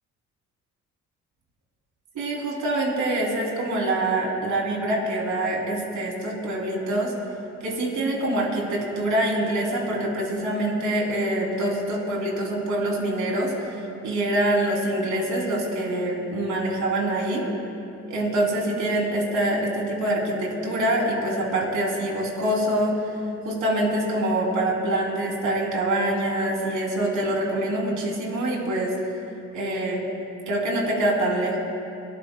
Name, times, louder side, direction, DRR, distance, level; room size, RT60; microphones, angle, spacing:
voice 1, 2.1-7.1 7.6-17.4 18.1-23.1 23.4-28.9 29.5-30.0 30.5-31.6, right 1 dB, 80° right, -1 dB, 3.2 m, -25 dB
29.5 x 14.0 x 2.3 m, 2.7 s
cardioid pair, 90°, 30 cm